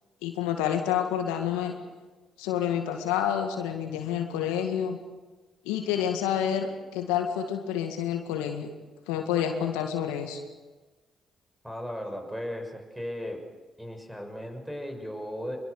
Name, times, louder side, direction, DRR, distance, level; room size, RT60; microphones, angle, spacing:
voice 1, 0.2-1.7 2.4-5.0 5.7-8.7 9.1-10.4, left 9 dB, 85° left, 4 dB, 2.0 m, -28 dB
voice 2, 11.6-13.4 13.8-15.6, equal, 5° right, 4 dB, 6.6 m, -36 dB
25.0 x 22.5 x 6.6 m, 1.3 s
hypercardioid pair, 50°, 0 cm